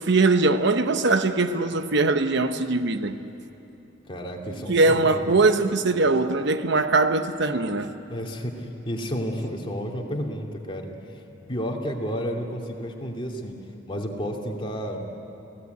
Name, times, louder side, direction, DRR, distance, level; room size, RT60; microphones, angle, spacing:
voice 1, 0.0-3.2 4.7-7.9, right 3 dB, 65° right, 1.0 m, -21 dB
voice 2, 4.1-5.2 8.1-10.9 11.5-13.6 13.9-15.0, equal, 25° left, 2.7 m, -31 dB
30.0 x 17.5 x 9.4 m
head